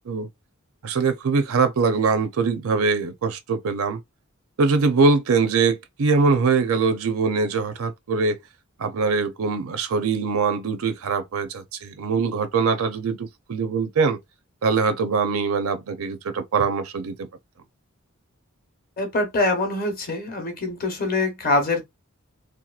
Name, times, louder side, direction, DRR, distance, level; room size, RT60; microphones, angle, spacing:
voice 1, 0.8-4.0 4.6-8.4 8.8-14.2 14.6-17.3, right 4 dB, 70° right, 0.5 m, -22 dB
voice 2, 19.0-21.8, left 2 dB, 45° left, 0.8 m, -24 dB
2.8 x 2.2 x 2.3 m
head